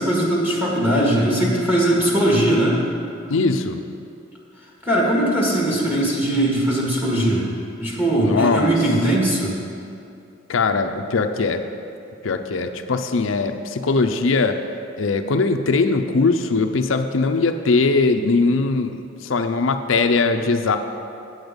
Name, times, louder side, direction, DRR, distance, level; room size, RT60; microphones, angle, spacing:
voice 1, 0.0-2.8 4.8-7.5 7.8-9.6, right 1 dB, 10° right, -4 dB, 1.7 m, -19 dB
voice 2, 3.3-3.8 8.2-8.7 10.5-11.6 12.2-14.6 15.0-20.8, left 3 dB, 85° left, 7 dB, 0.5 m, -20 dB
8.8 x 7.9 x 5.2 m, 2.5 s
head